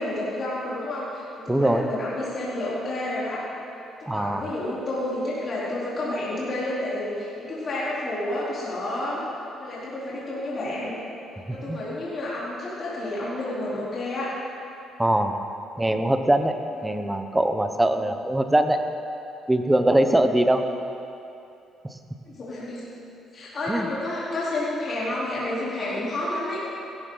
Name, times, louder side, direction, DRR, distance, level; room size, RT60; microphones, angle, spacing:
voice 1, 0.0-3.4 4.0-9.2 9.6-11.0 11.5-14.3 16.7-17.0 18.0-18.1 22.3-22.9 23.3-26.6, left 1 dB, 45° left, -9 dB, 3.8 m, -30 dB
voice 2, 1.5-1.8 4.1-4.5 11.5-11.8 15.0-15.4 15.8-16.6 16.8-18.8 19.5-20.6 23.7-23.9, right 1 dB, 10° right, 7 dB, 1.0 m, -22 dB
16.5 x 13.0 x 4.0 m, 2.7 s
cardioid pair, 85°, 0 cm